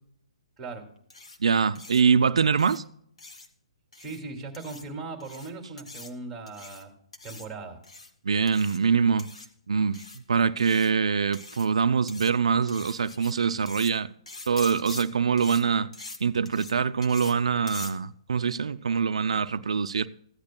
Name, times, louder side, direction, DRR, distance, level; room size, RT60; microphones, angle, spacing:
voice 1, 0.6-0.9 4.0-6.9 7.2-7.8, right 3 dB, 5° right, 2.5 m, -38 dB
sound 1, 1.1-1.4 1.7-2.0 2.6-2.8 3.2-3.5 3.9-4.2 4.5-4.8 5.2-5.5 5.8-6.1 6.5-6.8 7.1-7.5 7.8-8.1 8.5-8.8 9.2-9.5 9.9-10.2 10.6-10.9 11.3-11.7 12.1-12.3 12.7-13.3 13.7-13.9 14.3-15.0 15.4-15.6 15.9-16.2 16.4-16.7 17.0-17.3 17.7-17.9, left 3 dB, 85° left, 1.9 m, -43 dB
voice 2, 1.4-2.8 8.2-9.3 9.7-14.1 14.5-15.9 16.2-20.1, right 6 dB, 80° right, 0.5 m, -24 dB
15.5 x 10.5 x 2.2 m
hypercardioid pair, 150°, 3 cm